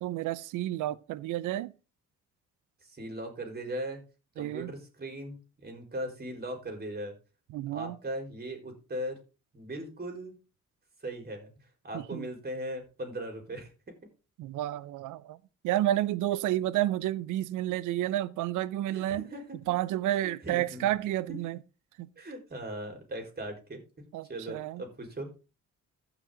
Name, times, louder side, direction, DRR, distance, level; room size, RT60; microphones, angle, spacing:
voice 1, 0.0-1.7 4.4-4.7 7.5-7.9 11.9-12.3 14.4-15.4 15.6-19.3 19.7-21.6 22.0-22.1 24.1-24.8, right 14 dB, 85° right, 0.6 m, -30 dB
voice 2, 2.8-4.0 4.4-7.1 7.7-9.2 9.5-10.4 11.0-11.5 11.8-13.7 18.9-19.4 20.1-20.9 21.3-21.4 22.2-25.3, right 1 dB, 30° right, 4.5 m, -39 dB
15.0 x 6.1 x 3.9 m
cardioid pair, 90°, 30 cm